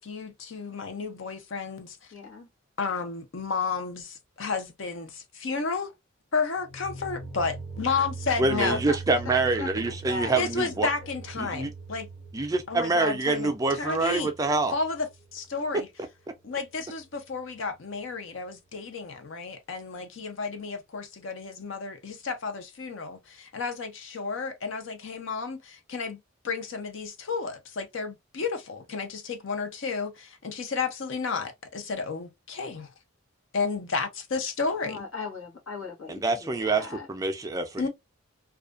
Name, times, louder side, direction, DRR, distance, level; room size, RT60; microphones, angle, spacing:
voice 1, 0.0-2.0 2.8-5.9 6.3-8.8 10.4-12.1 12.7-14.3 14.7-15.1 15.3-15.9 16.4-32.9 33.5-35.0 37.8-37.9, left 4 dB, 65° left, 0.6 m, -32 dB
voice 2, 2.1-2.5 8.5-9.2 9.4-10.8 34.8-37.1, left 5 dB, 85° left, 1.0 m, -38 dB
sound 1, 6.6-15.5, right 4 dB, 25° left, 0.6 m, -41 dB
voice 3, 8.4-10.9 11.4-11.7 12.3-14.7 36.1-37.9, right 3 dB, 15° right, 0.3 m, -26 dB
2.4 x 2.2 x 2.4 m
head